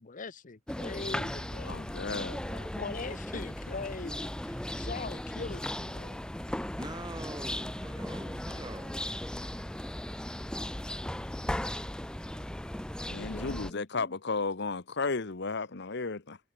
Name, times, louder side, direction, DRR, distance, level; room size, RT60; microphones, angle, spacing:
voice 1, 0.0-1.8 2.8-6.2 13.3-14.1, left 4 dB, 45° left, 0.9 m, -41 dB
sound 1, 0.7-13.7, left 1 dB, 5° left, 0.4 m, -37 dB
voice 2, 1.7-2.7 13.0-16.4, left 4 dB, 60° left, 1.2 m, -34 dB
voice 3, 6.8-9.1, right 2 dB, 20° right, 1.9 m, -44 dB
head